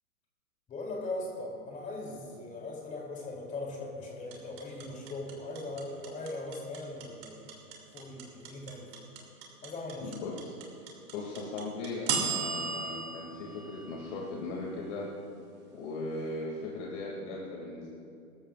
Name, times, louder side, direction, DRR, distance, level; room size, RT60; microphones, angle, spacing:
voice 1, 0.7-7.5 7.9-8.9 9.6-10.1, left 2 dB, 15° left, -1 dB, 3.2 m, -39 dB
sound 1, 4.3-14.5, right 5 dB, 30° right, 2.7 m, -36 dB
voice 2, 10.0-10.5 11.1-15.1 15.7-17.9, left 2 dB, 50° left, -3 dB, 2.7 m, -38 dB
24.0 x 14.5 x 2.6 m, 2.7 s
hypercardioid pair, 140°, 44 cm